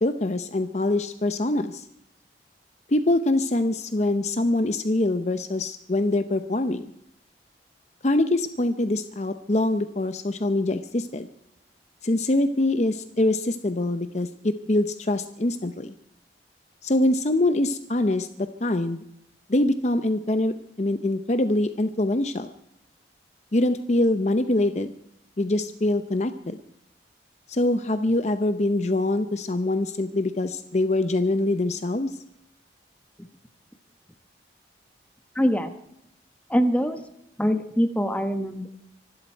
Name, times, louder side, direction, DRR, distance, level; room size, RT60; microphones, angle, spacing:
voice 1, 0.0-1.9 2.9-6.9 8.0-11.3 12.0-15.9 16.8-19.0 19.5-22.5 23.5-24.9 25.4-26.6 27.5-32.1, left 2 dB, 40° left, 10 dB, 0.7 m, -24 dB
voice 2, 35.3-35.7 36.5-37.0 37.4-38.7, equal, 5° left, 7 dB, 1.2 m, -23 dB
25.0 x 12.0 x 4.5 m, 0.78 s
head